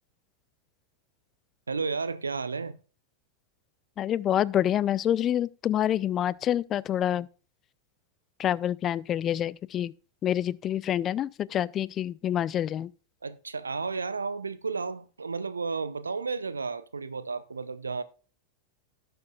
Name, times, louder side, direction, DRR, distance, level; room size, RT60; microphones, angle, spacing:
voice 1, 1.7-2.8 13.2-18.0, right 4 dB, 75° right, 0.7 m, -32 dB
voice 2, 4.0-7.3 8.4-9.9 10.2-12.9, left 11 dB, 30° left, 0.4 m, -27 dB
18.0 x 6.9 x 2.4 m
figure-of-eight pair, 90°, 0 cm